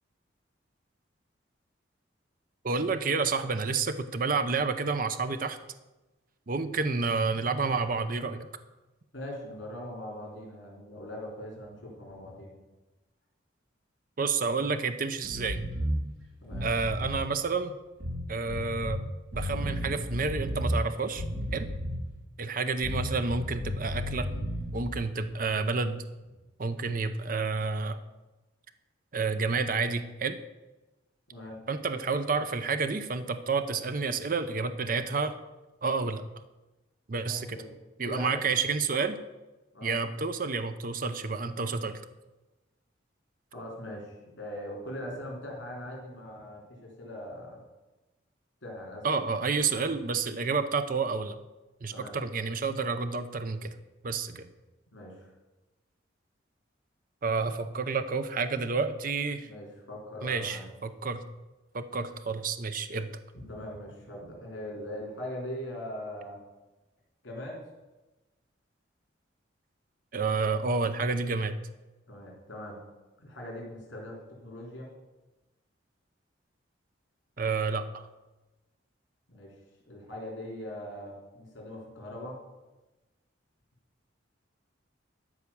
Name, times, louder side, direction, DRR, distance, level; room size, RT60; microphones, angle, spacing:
voice 1, 2.6-5.6 6.5-8.5 14.2-15.6 16.6-17.8 18.3-19.0 19.3-21.2 21.5-21.7 22.4-24.3 24.7-26.0 26.6-28.0 29.1-30.4 31.7-35.4 35.8-36.2 37.1-37.6 38.0-39.2 39.8-42.0 49.0-51.4 51.8-53.7 54.0-54.5 57.2-59.5 60.2-61.2 61.7-63.1 70.1-71.6 77.4-78.1, right 4 dB, 45° right, 10 dB, 0.6 m, -29 dB
voice 2, 9.1-12.5 16.4-16.7 31.3-31.6 37.2-37.7 38.1-38.4 39.7-39.9 43.5-47.6 48.6-49.3 51.9-52.2 54.9-55.3 59.4-60.6 63.3-66.4 67.2-67.6 72.1-72.8 73.2-74.9 79.3-79.5 79.9-82.4, left 1 dB, 75° left, -1 dB, 3.6 m, -41 dB
sound 1, 15.3-16.0 16.4-17.2 18.0-19.0 19.3-20.8 21.2-22.1 22.8-24.9, equal, 65° right, 4.4 m, -33 dB
13.0 x 4.9 x 7.0 m, 1.1 s
head